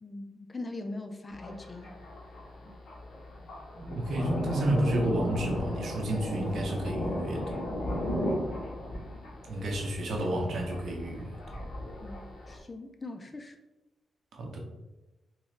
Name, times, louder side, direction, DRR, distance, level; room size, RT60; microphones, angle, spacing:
voice 1, 0.0-1.9 12.0-13.5, left 2 dB, 20° left, 6 dB, 0.3 m, -41 dB
Thunder, 1.3-12.6, equal, 55° left, 1.0 m, -36 dB
voice 2, 3.9-7.6 9.5-11.4 14.3-14.6, right 1 dB, 60° right, 1 dB, 0.8 m, -31 dB
3.6 x 3.1 x 3.1 m, 1.0 s
wide cardioid pair, 145°, 0 cm